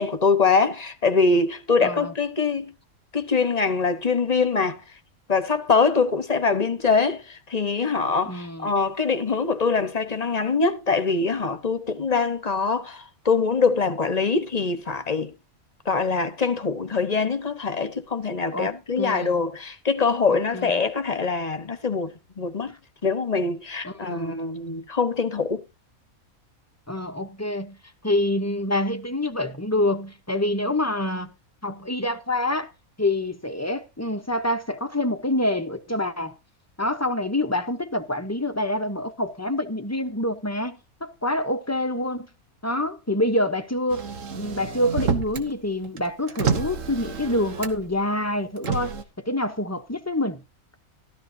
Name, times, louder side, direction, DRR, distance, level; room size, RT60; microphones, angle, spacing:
voice 1, 0.0-2.7 3.1-4.8 5.3-15.3 15.8-22.8 23.0-25.6, left 4 dB, 30° left, 1.0 m, -23 dB
voice 2, 1.8-2.1 8.3-8.7 18.5-19.4 20.3-20.8 23.8-24.4 26.9-27.8 28.0-31.3 31.6-32.7 33.0-36.4 36.8-42.3 42.6-48.9 49.3-50.4, left 1 dB, 15° left, 0.7 m, -26 dB
Motor vehicle (road), 43.9-45.5 45.8-48.0 48.6-49.0, right 6 dB, 65° right, 1.4 m, -29 dB
13.5 x 13.0 x 2.7 m
omnidirectional pair, 1.5 m